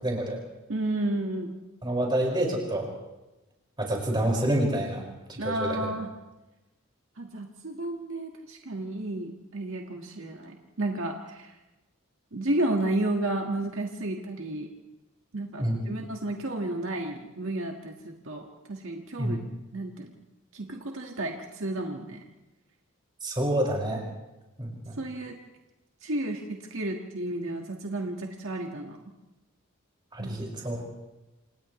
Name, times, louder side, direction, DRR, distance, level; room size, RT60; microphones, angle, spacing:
voice 1, 0.0-0.4 1.8-2.9 3.8-5.9 15.6-15.9 19.2-19.4 23.2-24.0 24.6-24.9 30.1-30.8, right 1 dB, 20° right, -1 dB, 5.5 m, -28 dB
voice 2, 0.7-1.6 5.4-6.1 7.2-11.6 12.3-14.7 15.3-19.4 19.7-20.1 20.5-22.2 25.0-25.4 26.0-29.0 30.2-30.5, right 1 dB, 65° right, 1 dB, 1.7 m, -32 dB
29.0 x 28.0 x 3.2 m, 1.0 s
head